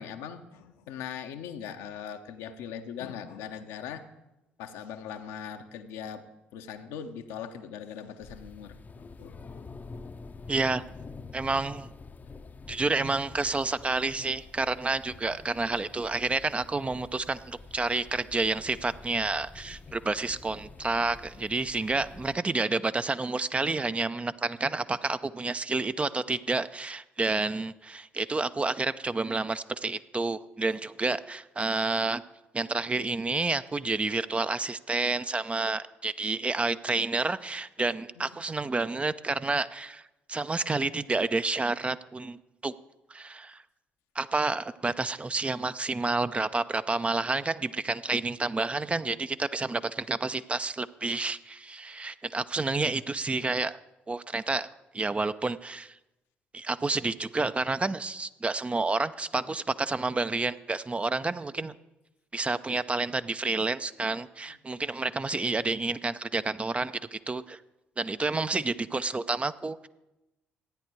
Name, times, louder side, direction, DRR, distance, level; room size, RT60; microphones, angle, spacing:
voice 1, 0.0-4.0 4.6-9.6 38.2-38.3, left 8 dB, 70° left, 7 dB, 0.8 m, -40 dB
sound 1, 8.2-22.3, left 4 dB, 30° left, 0.7 m, -47 dB
voice 2, 10.5-10.8 11.3-11.9 12.7-32.2 32.5-40.0 40.3-42.7 43.1-43.6 44.2-53.8 54.1-54.7 54.9-55.9 56.5-61.7 62.3-67.6 68.0-69.9, right 3 dB, 25° right, 13 dB, 0.5 m, -29 dB
13.5 x 9.6 x 4.6 m, 0.95 s
figure-of-eight pair, 45°, 5 cm